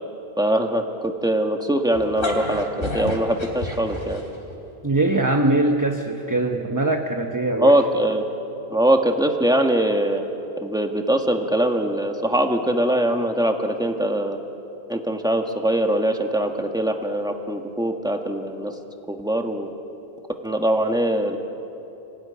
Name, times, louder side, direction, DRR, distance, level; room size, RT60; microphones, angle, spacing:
voice 1, 0.4-4.2 7.6-8.3 8.7-10.2 10.6-14.4 14.9-18.7 19.1-19.7 20.4-21.4, right 1 dB, 5° right, 3 dB, 1.6 m, -22 dB
sound 1, 1.9-4.5, left 1 dB, 60° left, 3.4 m, -30 dB
voice 2, 4.8-7.7, right 2 dB, 20° right, 3 dB, 1.0 m, -22 dB
25.5 x 16.5 x 9.9 m, 3.0 s
omnidirectional pair, 1.1 m